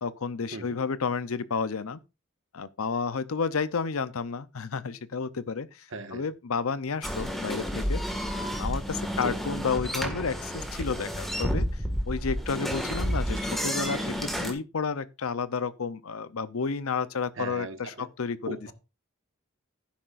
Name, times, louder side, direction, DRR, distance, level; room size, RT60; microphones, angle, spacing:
voice 1, 0.0-2.0 2.5-8.0 8.6-11.7 12.1-18.6, left 5 dB, 90° left, 0.7 m, -31 dB
voice 2, 5.9-6.2 9.2-9.4 17.4-18.1 18.5-18.7, right 2 dB, 65° right, 1.7 m, -38 dB
sound 1, 7.0-14.5, equal, ahead, 1.8 m, -31 dB
11.5 x 10.0 x 2.5 m
head